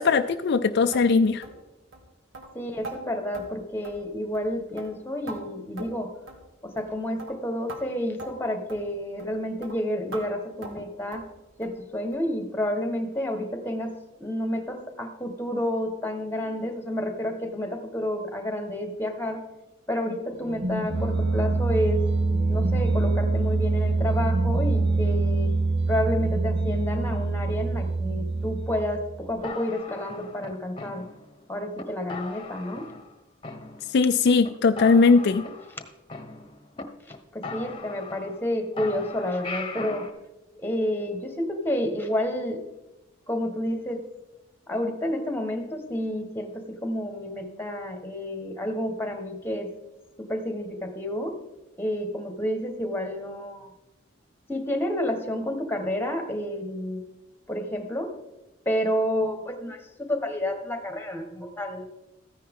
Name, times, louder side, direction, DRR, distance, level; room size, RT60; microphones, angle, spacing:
voice 1, 0.0-1.4 33.9-35.4, left 4 dB, 60° left, 8 dB, 0.4 m, -19 dB
sound 1, 0.9-1.1 1.4-1.6 1.9-2.0 2.3-2.5 2.8-3.0 3.3-3.5 3.8-4.1 4.3-4.5 4.8-5.4 5.8-6.0 6.3-6.4 6.8-6.9 7.2-7.4 7.7-7.8 8.2-8.3 8.7-8.8 9.2-9.3 9.6-9.8 10.1-10.3 10.6-10.8 11.1-11.3 11.6-11.8 12.1-12.2 12.6-12.7 13.1-13.2, right 2 dB, 90° right, 2.1 m, -41 dB
voice 2, 2.5-6.1 6.6-11.3 11.6-13.9 14.2-19.4 19.9-22.0 22.5-25.5 25.9-31.0 31.5-32.9 37.3-40.1 40.6-42.6 43.3-44.0 44.7-49.7 50.3-51.4 51.8-53.7 54.5-57.0 57.5-58.1 58.6-61.8, left 1 dB, 10° left, 6 dB, 1.4 m, -30 dB
sound 2, 20.4-29.2, right 3 dB, 60° right, 1.1 m, -25 dB
sound 3, 29.4-31.4 31.8-31.9 32.1-33.1 33.4-34.1 34.4-34.5 34.8-36.8 37.1-37.2 37.4-38.5 38.8-40.1, left 4 dB, 25° left, 1.1 m, -39 dB
14.0 x 10.0 x 3.7 m, 1.0 s
head